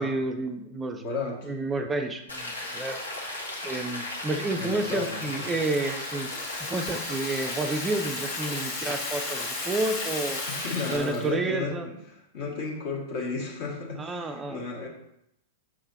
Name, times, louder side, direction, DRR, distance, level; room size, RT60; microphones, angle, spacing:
voice 1, 0.0-1.0 1.4-3.0 3.6-6.3 6.6-10.4 10.9-11.9 14.0-14.6, right 2 dB, 15° right, 5 dB, 0.4 m, -30 dB
voice 2, 1.0-1.5 4.5-5.6 10.5-14.9, left 4 dB, 50° left, -1 dB, 1.7 m, -34 dB
Rain, 2.3-11.0, left 1 dB, 80° left, 1.2 m, -36 dB
Rattle (instrument), 4.6-11.3, left 3 dB, 35° left, 1.9 m, -37 dB
6.2 x 3.9 x 4.0 m, 0.80 s
figure-of-eight pair, 95°, 0 cm